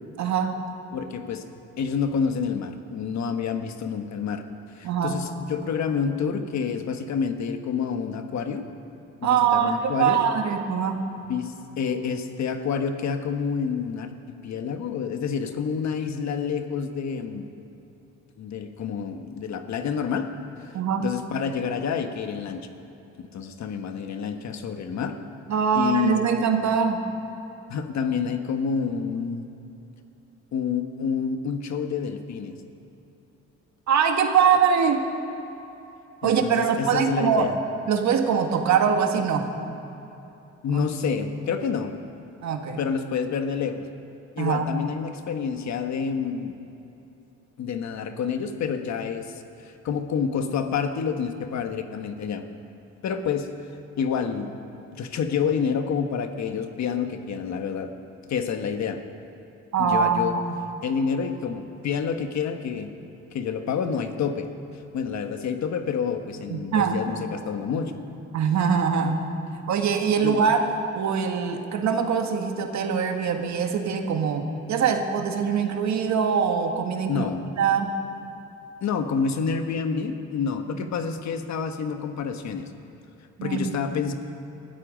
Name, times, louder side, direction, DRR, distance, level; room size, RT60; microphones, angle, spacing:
voice 1, 0.2-0.5 4.8-5.2 9.2-11.0 20.7-21.0 25.5-27.0 33.9-35.0 36.2-37.5 37.9-39.5 40.7-40.8 42.4-42.8 44.4-44.7 59.7-60.6 66.5-67.0 68.3-69.3 69.7-70.7 70.9-77.3 77.6-77.9 80.7-80.9 83.4-83.8, right 6 dB, 70° right, 5 dB, 1.7 m, -23 dB
voice 2, 0.9-1.5 1.8-4.4 4.7-8.6 9.2-10.2 11.3-14.1 14.4-17.5 18.4-20.3 20.6-20.7 21.0-22.6 23.2-25.2 25.7-26.3 27.7-29.5 30.5-32.6 36.2-37.5 40.6-42.0 42.8-43.9 44.4-46.5 47.6-52.4 53.0-53.5 54.0-54.5 54.9-57.9 58.3-59.0 59.8-60.4 60.8-62.9 63.3-64.5 64.9-67.9 70.2-70.4 77.1-77.5 78.8-82.7 83.4-84.1, left 6 dB, 65° left, 7 dB, 1.4 m, -28 dB
20.0 x 13.5 x 5.2 m, 3.0 s
cardioid pair, 90°, 30 cm